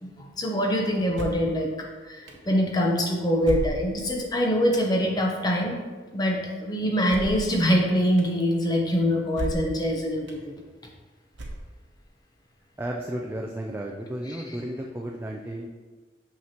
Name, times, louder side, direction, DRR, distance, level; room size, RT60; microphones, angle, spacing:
voice 1, 0.0-5.8 6.1-10.6 14.3-14.6, equal, 20° left, 0 dB, 0.8 m, -24 dB
sound 1, 1.1-1.5 2.3-2.4 3.4-4.1 4.7-4.9 7.1-7.5 8.2-8.3 9.3-9.8 10.3-10.4 11.3-11.9, right 1 dB, 80° right, 0.8 m, -33 dB
voice 2, 12.8-15.7, right 1 dB, 10° right, 0 dB, 0.3 m, -33 dB
6.0 x 5.8 x 2.9 m, 1.4 s
head